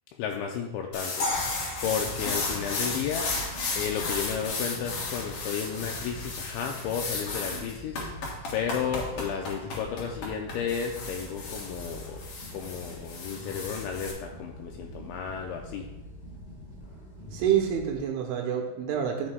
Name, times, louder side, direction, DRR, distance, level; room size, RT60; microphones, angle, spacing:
voice 1, 0.2-1.3 1.8-3.3 3.8-8.0 8.5-12.2 12.5-15.9, left 7 dB, 90° left, 2 dB, 2.6 m, -33 dB
sound 1, 0.9-14.1, left 3 dB, 65° left, 2.0 m, -34 dB
sound 2, 1.2-4.3, left 2 dB, 45° left, 2.6 m, -36 dB
sound 3, 1.3-18.0, equal, 25° left, 1.2 m, -44 dB
voice 2, 17.3-19.3, right 9 dB, 80° right, 2 dB, 3.2 m, -27 dB
11.0 x 7.2 x 2.2 m, 0.99 s
omnidirectional pair, 5.8 m